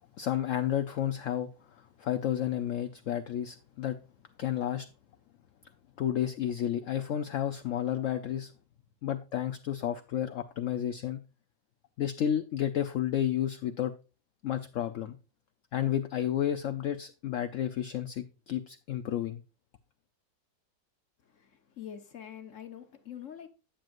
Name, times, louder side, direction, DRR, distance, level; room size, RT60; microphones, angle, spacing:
voice 1, 0.2-1.5 1.8-4.0 4.4-4.9 6.0-8.5 9.0-11.2 12.0-13.9 14.4-15.2 15.7-19.4, left 10 dB, 70° left, 0.7 m, -31 dB
voice 2, 21.2-23.5, left 9 dB, 50° left, 1.1 m, -45 dB
10.5 x 7.5 x 2.5 m
omnidirectional pair, 2.0 m